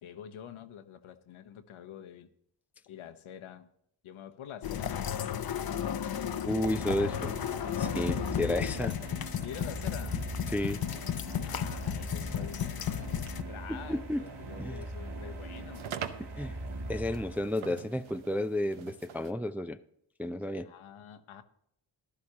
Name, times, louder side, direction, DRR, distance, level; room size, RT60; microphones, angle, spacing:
voice 1, 0.0-2.3 2.9-3.7 4.0-5.2 9.4-10.2 11.5-15.9 20.6-21.4, left 9 dB, 75° left, 1.0 m, -46 dB
sound 1, 4.6-13.4, left 9 dB, 45° left, 0.7 m, -34 dB
sound 2, 6.1-17.8, right 2 dB, 50° right, 2.2 m, -41 dB
voice 2, 6.4-7.4 7.8-9.0 10.5-10.8 13.7-14.3 14.6-14.9 16.2-16.6 16.9-19.8 20.2-20.7, left 1 dB, 5° right, 0.3 m, -32 dB
sound 3, 7.7-19.3, right 8 dB, 70° right, 0.9 m, -48 dB
14.5 x 11.5 x 2.9 m
cardioid pair, 60°, 50 cm